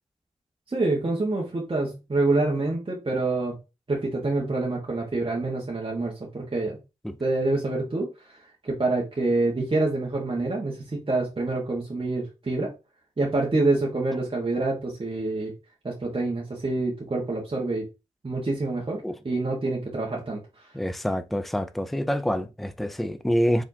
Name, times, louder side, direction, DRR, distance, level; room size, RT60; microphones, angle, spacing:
voice 1, 0.7-3.6 3.9-6.8 7.2-8.4 8.6-12.7 13.2-15.5 15.8-17.9 18.2-20.4, right 2 dB, 35° right, 1.5 m, -26 dB
voice 2, 20.7-23.6, equal, ahead, 0.5 m, -26 dB
4.5 x 3.6 x 2.8 m
supercardioid pair, 40°, 14 cm